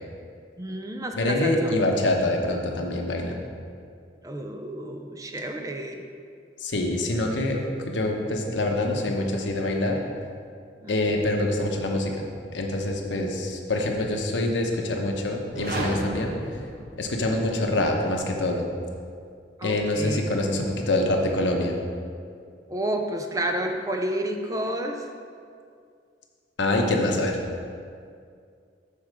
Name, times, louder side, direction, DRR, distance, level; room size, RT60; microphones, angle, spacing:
voice 1, 0.6-1.7 4.2-6.0 10.8-11.0 19.6-20.3 22.7-25.0, right 1 dB, 20° right, 3 dB, 0.5 m, -30 dB
voice 2, 1.2-3.4 6.6-10.0 10.9-12.3 12.5-16.3 17.0-18.7 19.6-21.8 26.6-27.4, left 1 dB, 85° left, 1 dB, 0.9 m, -25 dB
sound 1, 15.4-17.5, right 1 dB, 55° right, 1.0 m, -33 dB
7.0 x 4.3 x 6.2 m, 2.3 s
head